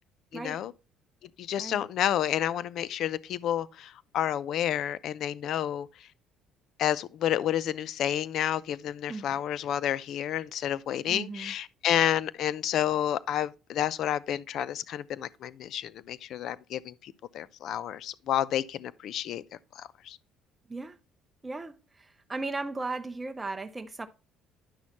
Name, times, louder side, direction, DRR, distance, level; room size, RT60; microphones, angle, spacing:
voice 1, 0.3-0.7 1.4-5.9 6.8-19.4 19.8-20.2, left 11 dB, 65° left, 0.5 m, -30 dB
voice 2, 11.1-11.5 20.7-21.0 21.4-24.1, right 3 dB, 15° right, 0.6 m, -36 dB
9.8 x 6.3 x 2.9 m
cardioid pair, 95°, 0 cm